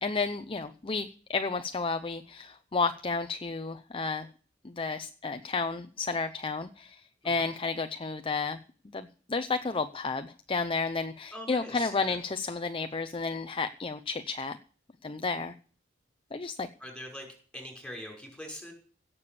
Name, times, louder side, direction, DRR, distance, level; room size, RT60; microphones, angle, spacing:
voice 1, 0.0-4.3 4.6-7.0 7.2-8.6 8.9-14.6 15.0-15.5 16.3-16.7, left 4 dB, 30° left, 9 dB, 0.6 m, -32 dB
voice 2, 11.3-12.2 16.8-17.3 17.5-18.7, equal, 5° left, 1 dB, 5.7 m, -43 dB
17.0 x 7.0 x 6.9 m, 0.42 s
head